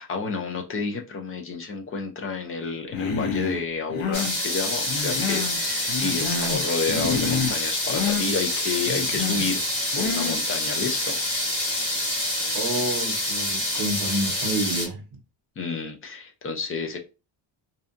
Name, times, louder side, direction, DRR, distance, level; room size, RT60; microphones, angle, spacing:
voice 1, 0.0-9.6 10.0-11.2 15.6-17.0, left 4 dB, 30° left, 0.4 m, -30 dB
Human voice, 2.9-3.6 3.9-4.4 4.9-5.6 5.9-6.6 6.9-7.6 7.9-8.3 8.9-9.5 9.9-10.4, left 5 dB, 85° left, 0.7 m, -28 dB
sound 1, 4.1-14.9, left 1 dB, 65° left, 1.5 m, -27 dB
voice 2, 12.5-15.0, right 1 dB, 45° right, 0.7 m, -29 dB
2.7 x 2.2 x 2.5 m
cardioid pair, 175°, 45 cm